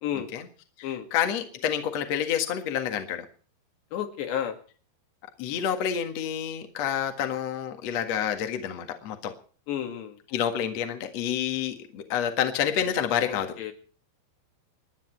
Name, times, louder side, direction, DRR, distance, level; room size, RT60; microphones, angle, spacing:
voice 1, 0.1-0.5 0.8-3.2 5.4-9.3 10.3-13.7, left 9 dB, 55° left, 6 dB, 2.1 m, -28 dB
voice 2, 3.9-4.6 9.7-10.2 13.3-13.7, left 10 dB, 75° left, 5 dB, 4.2 m, -32 dB
27.5 x 10.5 x 4.5 m, 0.42 s
omnidirectional pair, 5.2 m